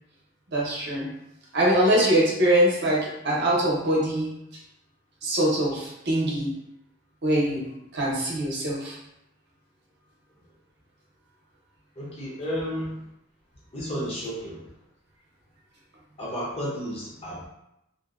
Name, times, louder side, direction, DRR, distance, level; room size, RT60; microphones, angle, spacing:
voice 1, 0.5-1.1 1.5-4.3 5.2-6.5 7.2-7.7 7.9-9.0, right 1 dB, 55° right, -4 dB, 0.6 m, -23 dB
voice 2, 12.0-13.0 13.7-14.6 16.2-17.5, equal, 30° left, -5 dB, 0.6 m, -32 dB
2.5 x 2.1 x 2.3 m, 0.82 s
head